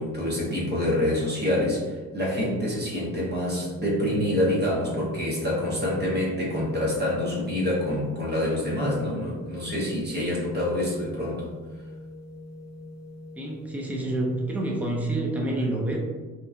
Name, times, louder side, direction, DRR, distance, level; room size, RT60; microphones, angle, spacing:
voice 1, 0.0-11.5, left 1 dB, 35° right, -5 dB, 0.7 m, -26 dB
sound 1, 3.6-14.9, left 1 dB, 60° left, 0.4 m, -40 dB
voice 2, 13.4-16.0, right 1 dB, 5° right, -1 dB, 0.4 m, -28 dB
2.8 x 2.2 x 2.4 m, 1.4 s
cardioid pair, 90°, 30 cm